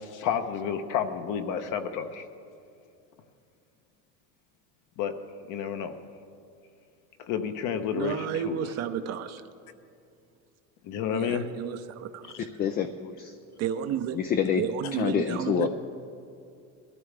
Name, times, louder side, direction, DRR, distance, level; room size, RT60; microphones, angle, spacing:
voice 1, 0.0-2.3 5.0-5.1 5.5-6.0 7.2-8.6 10.8-11.4 14.8-14.9, left 8 dB, 50° left, 8 dB, 1.1 m, -30 dB
voice 2, 7.9-9.5 11.1-12.4 13.6-14.2 14.6-15.7, right 9 dB, 40° right, 9 dB, 0.7 m, -32 dB
voice 3, 12.6-13.4 14.1-14.6 14.9-15.7, left 8 dB, 25° left, 7 dB, 0.4 m, -27 dB
20.5 x 14.0 x 3.4 m, 2.5 s
cardioid pair, 140°, 39 cm